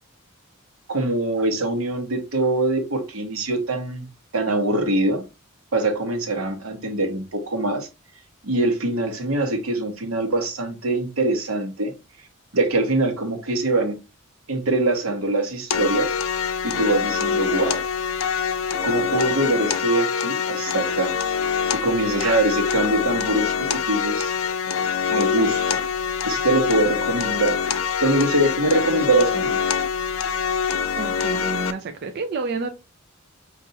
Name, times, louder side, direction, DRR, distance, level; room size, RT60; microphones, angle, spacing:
voice 1, 0.9-4.1 4.3-5.2 5.7-7.9 8.4-11.9 12.5-14.0 14.5-16.1 16.6-17.8 18.8-21.1 21.7-23.5 23.9-24.3 25.1-25.8 26.2-27.6 28.0-29.6, right 2 dB, 85° right, 1.0 m, -23 dB
sound 1, 15.7-31.7, left 7 dB, 75° left, 0.5 m, -25 dB
voice 2, 30.9-32.7, right 4 dB, 50° right, 0.4 m, -29 dB
5.2 x 2.5 x 2.7 m
head